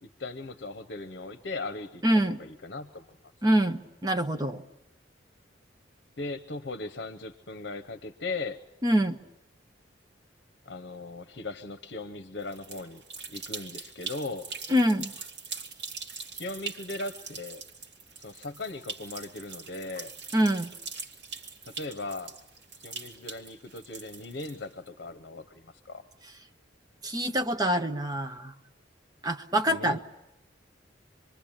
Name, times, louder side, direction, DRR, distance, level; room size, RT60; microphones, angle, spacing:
voice 1, 0.0-3.2 6.2-8.6 10.6-13.0 13.3-14.5 16.3-17.6 18.2-20.1 21.6-22.3 22.8-26.0 29.7-30.0, left 3 dB, 65° left, 8 dB, 0.9 m, -38 dB
voice 2, 2.0-2.4 3.4-4.6 8.8-9.2 14.7-15.1 20.3-20.7 27.0-28.5 29.2-30.0, equal, 20° right, 6 dB, 1.0 m, -25 dB
sound 1, 12.4-24.9, right 5 dB, 65° right, 2.4 m, -42 dB
26.5 x 23.0 x 8.8 m, 0.91 s
head